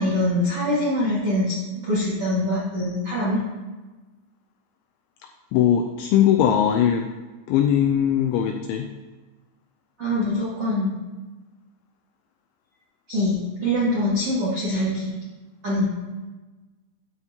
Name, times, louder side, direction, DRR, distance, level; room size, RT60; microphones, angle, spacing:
voice 1, 0.0-3.4 10.0-10.9 13.1-15.1 15.6-15.9, left 1 dB, 65° right, -8 dB, 1.4 m, -24 dB
voice 2, 5.5-7.1 7.5-8.9, left 9 dB, 85° left, 5 dB, 2.7 m, -20 dB
13.5 x 8.5 x 2.9 m, 1.2 s
omnidirectional pair, 6.0 m